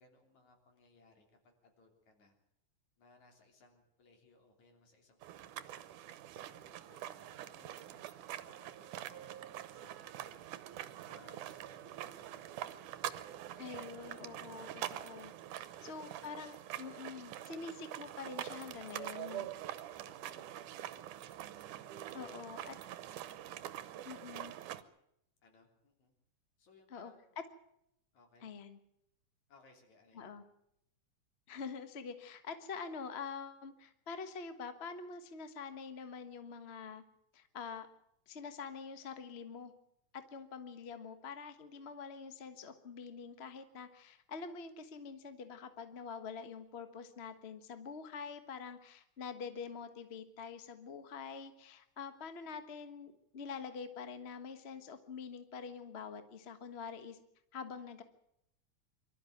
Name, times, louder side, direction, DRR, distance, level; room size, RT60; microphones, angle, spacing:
voice 1, 0.0-2.3 3.0-6.0 6.5-10.5 11.0-13.0 13.4-13.6 15.5-15.9 17.1-17.4 20.0-20.6 21.1-21.3 25.4-26.1 26.6-27.4 28.1-28.5 29.5-30.3, left 3 dB, 65° left, 3 dB, 4.8 m, -65 dB
sound 1, 5.2-24.8, right 12 dB, 85° right, 2.5 m, -45 dB
voice 2, 13.6-15.3 15.6-19.5 22.1-22.8 24.0-24.5 26.9-27.1 28.4-28.8 30.1-30.4 31.5-37.0 37.3-37.9 38.3-39.7 40.1-57.2 57.5-58.0, left 5 dB, 50° left, 9 dB, 0.7 m, -46 dB
24.0 x 13.0 x 9.2 m, 0.78 s
omnidirectional pair, 3.5 m